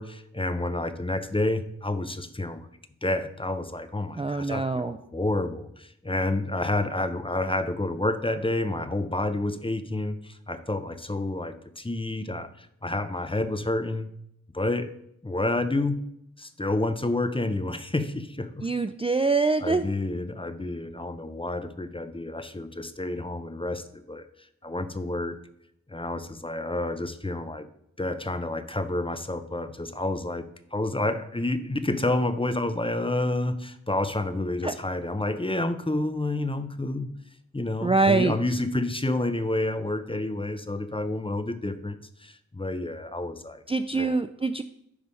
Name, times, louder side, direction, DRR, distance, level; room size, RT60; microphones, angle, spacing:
voice 1, 0.0-2.7 3.0-14.1 14.5-14.9 15.2-16.0 16.4-18.7 19.6-24.2 24.6-25.4 25.9-27.7 28.0-30.4 30.7-37.1 37.5-43.6 43.9-44.2, left 2 dB, 20° left, 10 dB, 0.6 m, -29 dB
voice 2, 4.2-5.0 18.6-19.9 34.6-34.7 37.8-38.3 43.7-44.6, right 3 dB, 20° right, 9 dB, 0.3 m, -24 dB
9.5 x 3.4 x 5.4 m, 0.76 s
wide cardioid pair, 55°, 29 cm